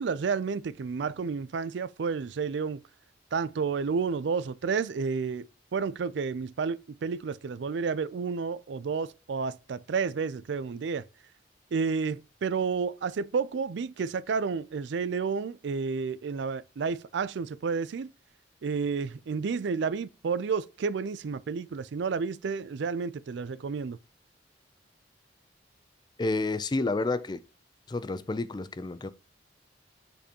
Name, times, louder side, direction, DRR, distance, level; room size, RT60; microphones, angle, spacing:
voice 1, 0.0-2.8 3.3-11.0 11.7-18.1 18.6-24.0, right 5 dB, 65° right, 0.4 m, -31 dB
voice 2, 26.2-27.4 27.9-29.1, left 2 dB, 25° left, 0.4 m, -30 dB
6.8 x 5.2 x 2.8 m
head